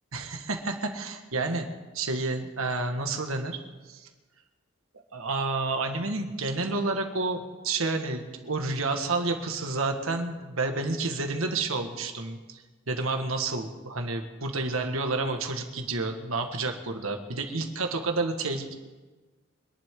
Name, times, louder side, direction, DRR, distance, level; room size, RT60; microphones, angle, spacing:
voice 1, 0.1-1.7 1.9-3.6 3.8-4.1 5.1-18.7, right 3 dB, 85° right, 4 dB, 1.7 m, -30 dB
25.0 x 11.0 x 3.8 m, 1.3 s
head